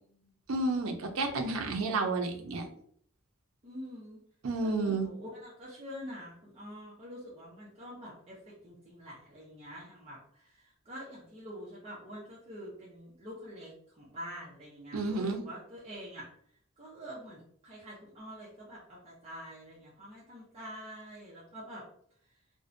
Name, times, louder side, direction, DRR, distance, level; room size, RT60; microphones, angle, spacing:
voice 1, 0.5-2.6 4.4-5.1 14.9-15.4, right 3 dB, 85° right, 4 dB, 0.5 m, -31 dB
voice 2, 3.6-4.2 4.6-16.3 16.8-21.8, equal, 30° right, -7 dB, 0.5 m, -46 dB
2.5 x 2.1 x 2.5 m, 0.63 s
head